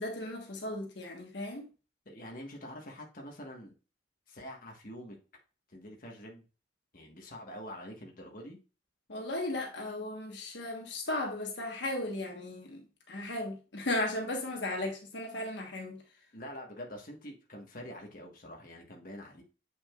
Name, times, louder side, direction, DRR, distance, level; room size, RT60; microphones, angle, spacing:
voice 1, 0.0-1.7 9.1-16.0, left 1 dB, 70° left, 1.4 m, -36 dB
voice 2, 2.0-3.7 4.3-5.2 5.7-6.4 6.9-8.6 16.3-19.4, equal, 50° left, 1.5 m, -45 dB
7.8 x 6.2 x 2.4 m
head